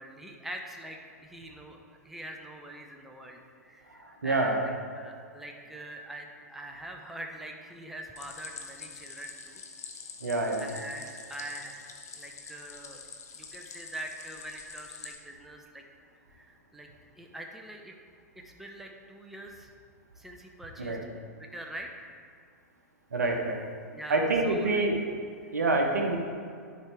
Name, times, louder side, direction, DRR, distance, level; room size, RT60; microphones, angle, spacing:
voice 1, 0.0-1.8 2.0-9.6 10.6-11.8 12.1-13.0 13.3-15.8 16.3-16.9 17.2-17.9 18.4-19.7 20.2-21.0 21.4-22.1 23.9-24.9, right 1 dB, 5° right, 2 dB, 0.6 m, -43 dB
voice 2, 4.0-4.6 10.2-10.7 20.8-21.0 23.1-23.6 24.1-25.0 25.5-26.2, right 2 dB, 75° right, 2 dB, 1.0 m, -26 dB
Stream, 8.2-15.2, left 5 dB, 65° left, 0.9 m, -46 dB
11.0 x 4.6 x 3.4 m, 2.3 s
figure-of-eight pair, 105°, 9 cm